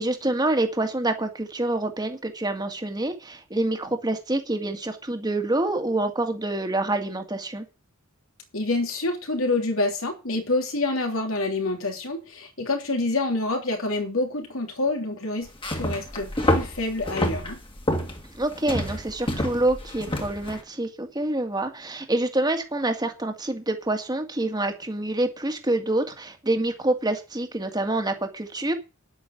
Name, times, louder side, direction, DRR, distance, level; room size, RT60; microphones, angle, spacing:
voice 1, 0.0-7.7 18.4-28.7, right 2 dB, 20° right, 2.0 m, -26 dB
voice 2, 8.5-15.5 15.7-17.6, left 2 dB, 75° left, 3.2 m, -27 dB
sound 1, 15.5-20.6, left 1 dB, 25° left, 2.3 m, -28 dB
10.0 x 8.5 x 6.6 m
head